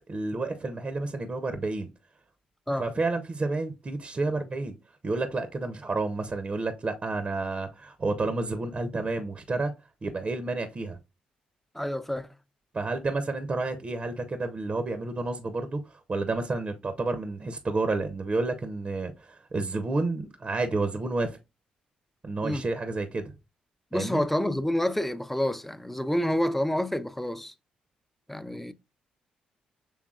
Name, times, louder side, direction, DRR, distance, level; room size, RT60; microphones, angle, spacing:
voice 1, 0.1-1.9 2.8-4.8 5.0-9.7 10.0-11.0 12.7-21.4 22.2-23.3 23.9-24.2, right 3 dB, 40° right, 0.7 m, -30 dB
voice 2, 11.7-12.3 22.4-22.7 23.9-27.5 28.3-28.7, left 1 dB, 5° left, 0.5 m, -28 dB
6.3 x 3.4 x 2.3 m
hypercardioid pair, 45°, 3 cm